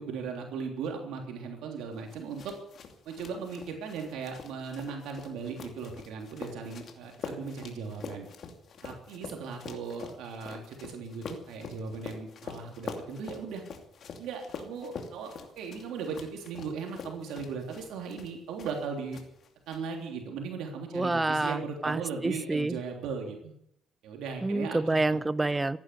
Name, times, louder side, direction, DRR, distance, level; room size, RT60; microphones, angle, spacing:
voice 1, 0.0-2.5 3.1-8.3 8.8-13.6 14.2-19.2 19.7-23.5 24.0-24.8, right 5 dB, 90° right, 2 dB, 3.3 m, -37 dB
sound 1, 2.1-18.8 19.1-19.8, left 5 dB, 55° left, 2.7 m, -45 dB
voice 2, 20.9-22.8 24.4-25.8, right 2 dB, 15° right, 16 dB, 0.7 m, -28 dB
15.0 x 11.5 x 8.4 m, 0.73 s
cardioid pair, 110°, 0 cm